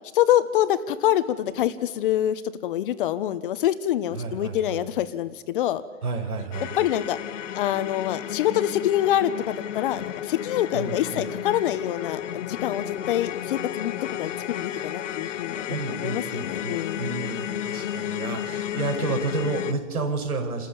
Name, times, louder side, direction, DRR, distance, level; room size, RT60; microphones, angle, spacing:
voice 1, 0.1-5.8 6.8-7.2 7.5-17.0, left 12 dB, 35° left, 13 dB, 1.2 m, -26 dB
voice 2, 4.1-4.8 6.0-6.7 10.7-11.3 15.7-20.7, right 4 dB, 85° right, 4 dB, 5.5 m, -31 dB
sound 1, 6.5-19.7, left 10 dB, 60° left, 1.1 m, -33 dB
29.5 x 14.0 x 7.2 m, 1.4 s
hypercardioid pair, 150°, 43 cm